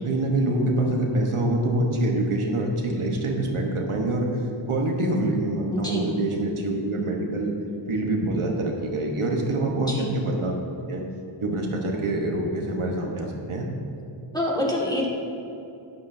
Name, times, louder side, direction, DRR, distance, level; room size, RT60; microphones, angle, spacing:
voice 1, 0.0-4.4 4.7-7.5 7.9-10.5 10.9-11.0 11.4-13.7, right 1 dB, 80° right, 0 dB, 1.3 m, -25 dB
voice 2, 5.7-6.0 9.9-10.1 14.3-15.1, left 1 dB, 10° left, -4 dB, 1.9 m, -26 dB
11.5 x 9.5 x 2.7 m, 2.7 s
wide cardioid pair, 75°, 50 cm